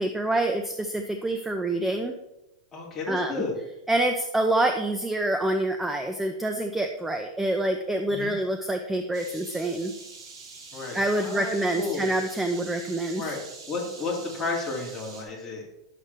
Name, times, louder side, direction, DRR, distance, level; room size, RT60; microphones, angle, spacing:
voice 1, 0.0-2.1 3.1-3.4 3.9-9.9 10.9-13.3, right 1 dB, 5° right, 5 dB, 0.5 m, -26 dB
voice 2, 2.7-3.6 8.1-8.3 10.7-12.1 13.1-13.4 13.7-15.6, left 3 dB, 15° left, -3 dB, 2.4 m, -32 dB
sound 1, 9.1-15.2, right 4 dB, 65° right, 2.3 m, -45 dB
10.5 x 6.7 x 3.3 m, 0.91 s
supercardioid pair, 150°, 3 cm